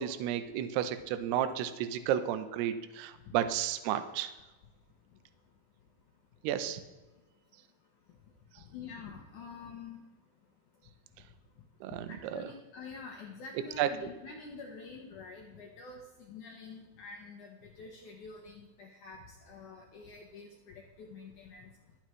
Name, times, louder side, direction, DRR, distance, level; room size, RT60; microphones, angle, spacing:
voice 1, 0.0-4.3 6.4-6.8 11.8-12.1 12.3-12.4 13.8-13.9, right 10 dB, 80° right, 10 dB, 2.7 m, -32 dB
voice 2, 8.7-10.0 12.1-21.7, left 4 dB, 75° left, 1 dB, 1.8 m, -47 dB
21.0 x 7.9 x 3.1 m, 1.1 s
omnidirectional pair, 4.8 m